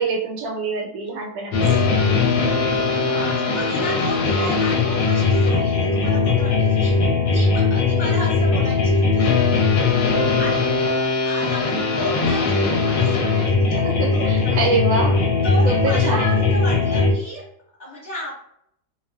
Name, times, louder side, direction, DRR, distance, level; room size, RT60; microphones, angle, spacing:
voice 1, 0.0-1.9 13.8-15.2 15.6-16.4, right 3 dB, 75° right, 1 dB, 1.0 m, -25 dB
sound 1, 1.5-17.1, left 4 dB, 70° left, 0.9 m, -19 dB
voice 2, 2.9-7.0 7.3-9.3 9.7-13.8 14.1-14.6 15.4-17.4 17.8-18.4, equal, 35° left, -10 dB, 0.9 m, -33 dB
2.5 x 2.3 x 2.2 m, 0.73 s
omnidirectional pair, 1.7 m